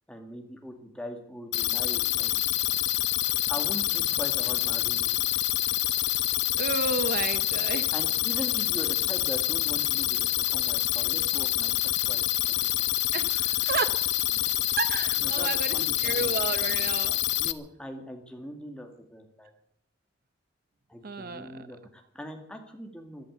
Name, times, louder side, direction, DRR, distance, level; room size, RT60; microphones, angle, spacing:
voice 1, 0.1-2.4 3.5-5.1 7.9-11.7 12.1-12.2 15.2-16.3 17.4-19.5 20.9-23.3, equal, 5° left, 3 dB, 2.3 m, -40 dB
sound 1, 1.5-17.5, left 14 dB, 60° left, 0.8 m, -27 dB
voice 2, 6.6-7.9 13.1-14.0 14.3-14.4 14.8-17.1 21.0-21.7, right 4 dB, 50° right, 12 dB, 0.8 m, -32 dB
14.0 x 12.0 x 8.2 m, 0.72 s
head